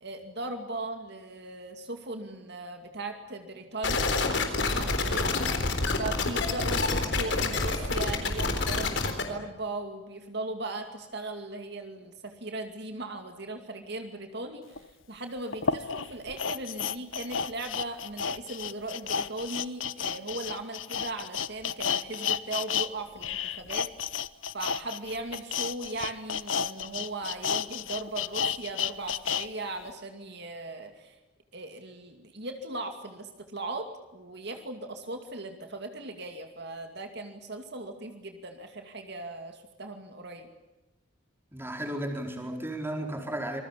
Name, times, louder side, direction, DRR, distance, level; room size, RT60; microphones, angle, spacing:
voice 1, 0.0-5.3 5.9-23.9 24.5-31.2 31.5-40.5, right 2 dB, 60° right, 5 dB, 2.5 m, -38 dB
sound 1, 3.8-9.2, left 3 dB, 65° left, 3.9 m, -27 dB
sound 2, 14.8-14.9 15.5-22.9 23.2-29.5 29.8-29.9, left 7 dB, 80° left, 0.9 m, -31 dB
voice 2, 41.5-43.6, right 1 dB, 10° right, 2 dB, 4.5 m, -34 dB
27.0 x 21.5 x 8.5 m, 1.0 s
head